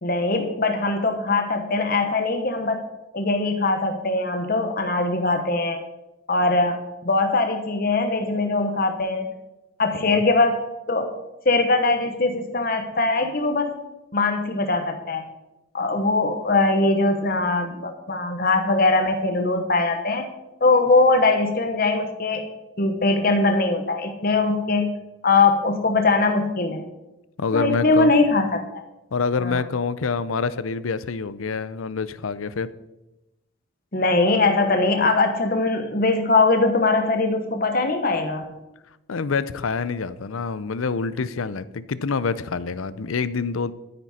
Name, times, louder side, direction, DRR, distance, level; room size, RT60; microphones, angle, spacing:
voice 1, 0.0-2.8 3.1-5.8 6.3-9.3 9.8-10.6 10.9-11.1 11.4-13.7 14.1-15.3 15.7-20.3 20.6-22.4 22.8-24.9 25.2-26.8 27.5-28.6 29.4-29.6 33.9-38.4, left 3 dB, 45° left, 5 dB, 1.1 m, -21 dB
voice 2, 27.4-28.1 29.1-32.7 39.1-43.7, left 4 dB, 90° left, 16 dB, 0.6 m, -26 dB
13.0 x 9.6 x 4.3 m, 0.95 s
head